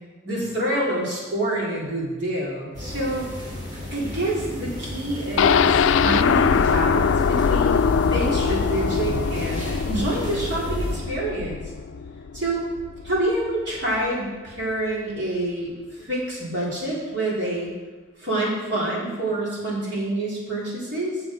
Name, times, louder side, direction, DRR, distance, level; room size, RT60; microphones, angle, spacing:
voice 1, 0.2-3.2 3.9-11.6 12.3-12.6 13.0-17.7 18.2-21.2, right 1 dB, 60° right, -6 dB, 3.4 m, -27 dB
sound 1, 2.7-11.0, left 1 dB, 35° right, 3.4 m, -32 dB
sound 2, 5.4-13.2 13.6-13.7 14.1-14.2, left 6 dB, 85° left, 0.3 m, -22 dB
8.8 x 8.2 x 5.1 m, 1.3 s
head